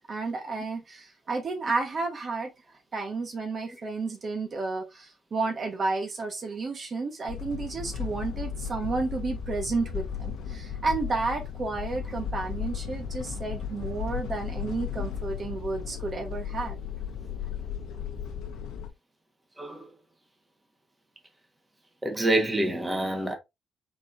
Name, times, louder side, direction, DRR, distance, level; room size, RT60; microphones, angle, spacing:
voice 1, 0.1-2.5 2.9-16.8, right 3 dB, 45° right, 1.2 m, -31 dB
sound 1, 7.3-18.9, left 8 dB, 85° left, 0.9 m, -35 dB
voice 2, 22.0-23.3, right 1 dB, 15° right, 1.3 m, -26 dB
4.8 x 4.0 x 2.6 m
cardioid pair, 90°, 0 cm